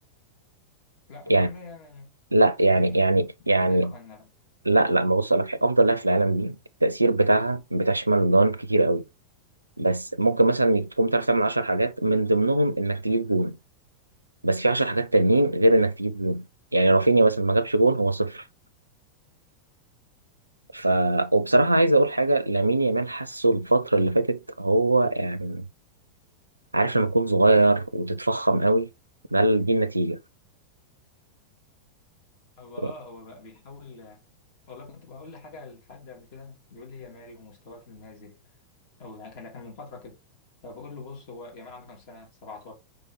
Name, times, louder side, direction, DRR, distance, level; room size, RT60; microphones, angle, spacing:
voice 1, 1.1-2.1 2.7-3.1 3.6-4.3 32.6-34.2 34.7-38.4 39.0-40.2 40.6-42.7, left 3 dB, 45° left, 2.7 m, -44 dB
voice 2, 2.3-3.9 4.6-6.6 6.8-9.0 9.8-13.6 14.4-16.5 16.7-18.4 20.7-25.6 26.7-28.9 29.3-30.2 32.8-32.9, right 2 dB, 85° right, 0.4 m, -21 dB
5.0 x 4.4 x 4.6 m
figure-of-eight pair, 90°, 0 cm